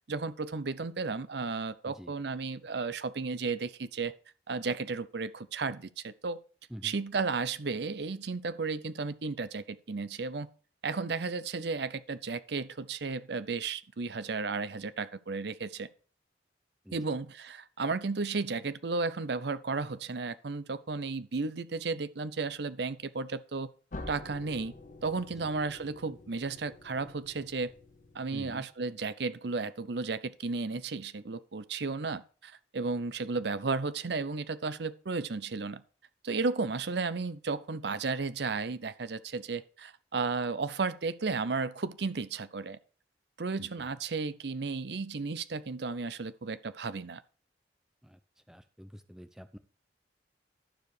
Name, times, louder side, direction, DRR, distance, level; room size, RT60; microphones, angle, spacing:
voice 1, 0.1-4.1 4.5-6.4 6.8-10.5 10.8-15.9 16.9-23.7 24.1-24.7 25.0-27.7 28.1-35.8 36.2-42.8 43.4-47.2, right 4 dB, 65° right, 0.6 m, -34 dB
sound 1, 23.9-28.7, left 2 dB, 45° left, 0.9 m, -48 dB
voice 2, 28.3-28.7 43.6-43.9 48.0-48.2 48.5-49.6, equal, 5° right, 0.6 m, -47 dB
12.0 x 4.9 x 4.8 m
head